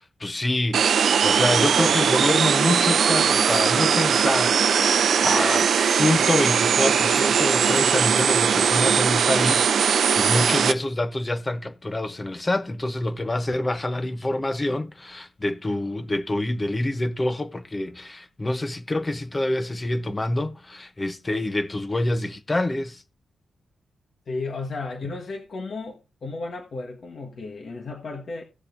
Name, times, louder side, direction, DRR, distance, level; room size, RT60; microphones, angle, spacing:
voice 1, 0.2-4.9 5.2-23.0, left 1 dB, 20° left, 0.8 m, -26 dB
sound 1, 0.7-10.7, right 7 dB, 70° right, 0.6 m, -20 dB
voice 2, 24.3-28.4, left 3 dB, 55° left, 1.4 m, -34 dB
17.0 x 6.5 x 2.6 m
wide cardioid pair, 115°, 0 cm